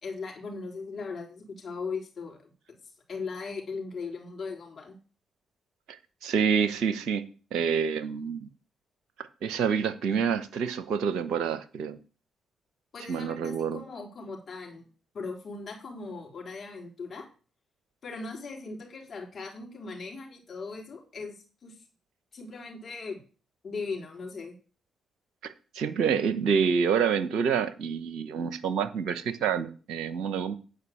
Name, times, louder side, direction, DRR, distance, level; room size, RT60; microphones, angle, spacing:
voice 1, 0.0-2.8 3.1-5.0 12.9-14.8 15.1-17.3 18.0-21.7 22.3-23.2 23.6-24.5, left 4 dB, 50° left, 3.8 m, -38 dB
voice 2, 6.2-8.5 9.2-12.0 13.1-13.8 25.4-30.5, right 6 dB, 65° right, 0.8 m, -27 dB
9.4 x 4.9 x 7.5 m
hypercardioid pair, 40°, 0 cm